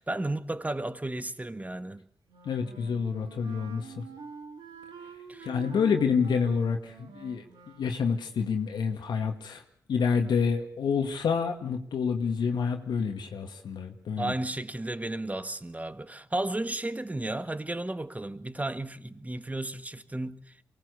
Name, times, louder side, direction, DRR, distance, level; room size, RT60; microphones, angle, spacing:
voice 1, 0.0-2.0 5.3-5.5 14.2-20.5, right 2 dB, 20° right, 1.7 m, -33 dB
Wind instrument woodwind instrument, 2.3-7.9, right 5 dB, 85° right, 2.6 m, -46 dB
voice 2, 2.5-4.0 5.4-7.4 7.8-9.6 9.9-14.3, left 6 dB, 80° left, 2.1 m, -28 dB
23.0 x 18.5 x 8.3 m
supercardioid pair, 50°, 7 cm